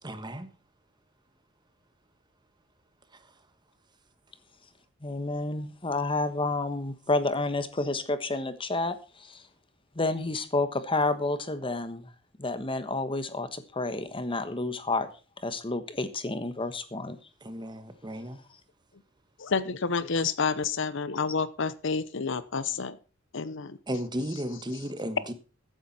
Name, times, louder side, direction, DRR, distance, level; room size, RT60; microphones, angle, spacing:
voice 1, 0.0-0.5 3.1-3.3 17.4-18.4 23.9-25.3, equal, 20° right, 1.4 m, -35 dB
voice 2, 5.0-9.4 9.9-12.1 12.4-15.1 15.4-17.2, left 2 dB, 25° left, 1.3 m, -30 dB
voice 3, 19.4-23.0 23.3-23.8, left 5 dB, 65° left, 0.8 m, -29 dB
14.5 x 10.0 x 4.2 m
head